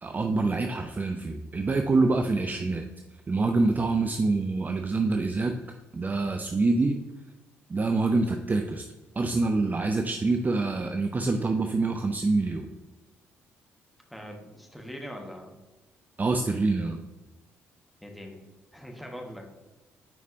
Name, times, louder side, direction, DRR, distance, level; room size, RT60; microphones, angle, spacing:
voice 1, 0.0-2.8 3.3-5.6 5.9-7.0 7.7-8.8 9.2-12.7 16.2-17.0, right 3 dB, 25° right, 5 dB, 0.5 m, -26 dB
voice 2, 14.1-15.6 18.0-18.5 18.7-19.4, equal, ahead, 1 dB, 1.3 m, -42 dB
7.6 x 5.0 x 2.6 m, 1.1 s
figure-of-eight pair, 40°, 7 cm